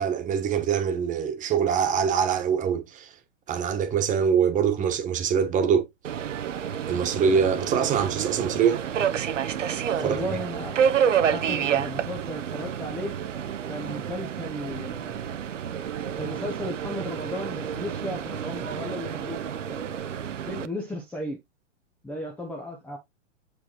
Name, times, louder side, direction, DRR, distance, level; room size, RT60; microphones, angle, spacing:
voice 1, 0.0-3.2 3.5-5.8 6.8-8.9 10.0-10.2, right 7 dB, 20° right, 1.3 m, -24 dB
Subway metro underground, 6.0-20.7, right 8 dB, 85° right, 0.7 m, -29 dB
voice 2, 10.0-10.8 11.3-13.1 13.7-15.4 16.2-19.8 20.5-21.4 22.0-23.0, left 1 dB, 5° left, 0.6 m, -35 dB
7.1 x 4.9 x 3.0 m
hypercardioid pair, 120°, 36 cm